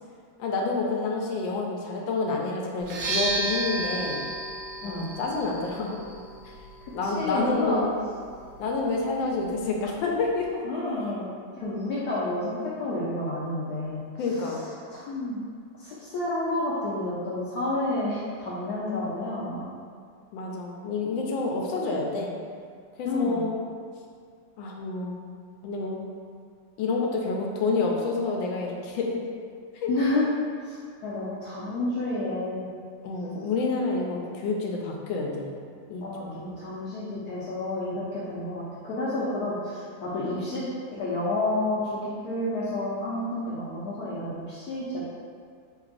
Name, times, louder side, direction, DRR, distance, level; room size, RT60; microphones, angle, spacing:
voice 1, 0.4-4.2 4.8-6.0 6.9-7.9 8.6-10.6 14.2-14.6 20.3-22.3 23.0-23.6 24.6-25.2 25.6-26.1 26.8-29.2 29.8-29.9 33.0-35.5 35.9-36.4, left 3 dB, 85° left, -1 dB, 1.4 m, -28 dB
sound 1, 2.8-10.6, right 2 dB, 75° right, 1.3 m, -35 dB
voice 2, 6.8-7.8 10.6-14.0 14.9-15.4 15.8-19.6 23.0-23.4 29.9-30.3 30.6-32.7 36.0-45.0, left 2 dB, 70° left, -8 dB, 1.0 m, -30 dB
3.8 x 3.4 x 2.5 m, 2.2 s
omnidirectional pair, 2.1 m